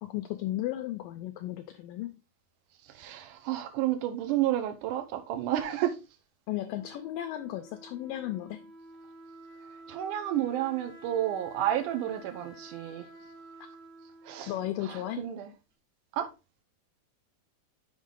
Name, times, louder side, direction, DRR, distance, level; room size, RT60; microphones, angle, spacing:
voice 1, 0.0-2.1 6.5-8.6 14.5-15.3, left 13 dB, 80° left, 2.0 m, -35 dB
voice 2, 2.9-6.0 9.9-13.1 14.2-14.5 14.9-15.5 16.2-16.3, right 12 dB, 75° right, 1.9 m, -31 dB
Wind instrument woodwind instrument, 6.7-15.5, right 2 dB, 55° right, 1.6 m, -51 dB
6.4 x 5.2 x 3.7 m
omnidirectional pair, 4.4 m